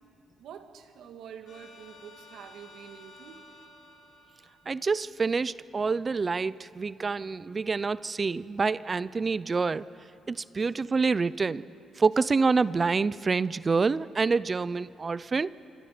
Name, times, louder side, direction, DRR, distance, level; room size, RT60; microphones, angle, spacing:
voice 1, 0.4-3.5 10.6-10.7, right 8 dB, 80° right, 6 dB, 1.8 m, -47 dB
sound 1, 1.5-5.4, left 2 dB, 55° left, 4.7 m, -53 dB
voice 2, 4.7-9.9 10.3-11.6 12.0-15.5, right 4 dB, 35° right, 18 dB, 0.5 m, -27 dB
27.0 x 25.0 x 5.1 m, 2.9 s
cardioid pair, 90°, 0 cm